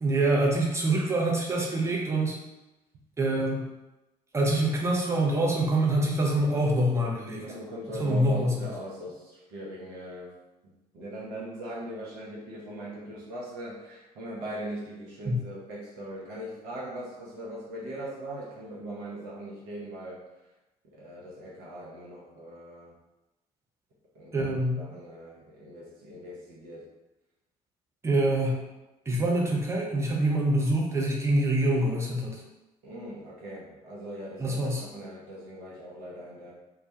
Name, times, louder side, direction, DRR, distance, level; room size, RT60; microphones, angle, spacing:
voice 1, 0.0-2.4 3.2-3.7 4.3-7.5 7.9-8.7 15.2-15.4 24.3-24.8 28.0-28.6 29.1-32.4 34.4-34.8, right 1 dB, 15° right, -3 dB, 0.6 m, -25 dB
voice 2, 7.4-10.3 10.9-20.2 20.9-22.9 24.1-24.5 24.8-26.8 32.8-36.5, right 1 dB, 55° right, -5 dB, 0.7 m, -40 dB
2.2 x 2.1 x 2.7 m, 1.0 s
figure-of-eight pair, 50°, 20 cm